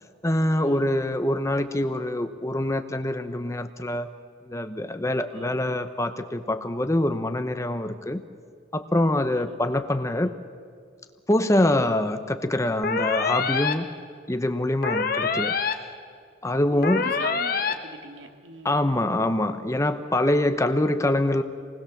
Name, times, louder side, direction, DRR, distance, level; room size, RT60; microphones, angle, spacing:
voice 1, 0.2-4.1 4.5-8.2 8.7-10.3 11.3-13.9 14.3-15.5 16.4-17.1 18.6-21.4, left 1 dB, 15° left, 9 dB, 0.8 m, -24 dB
sound 1, 12.8-13.7 14.8-15.7 16.8-17.7, left 5 dB, 50° left, 1.4 m, -25 dB
voice 2, 16.7-18.8, right 2 dB, 85° right, 5 dB, 2.2 m, -41 dB
27.5 x 20.0 x 7.2 m, 2.1 s
head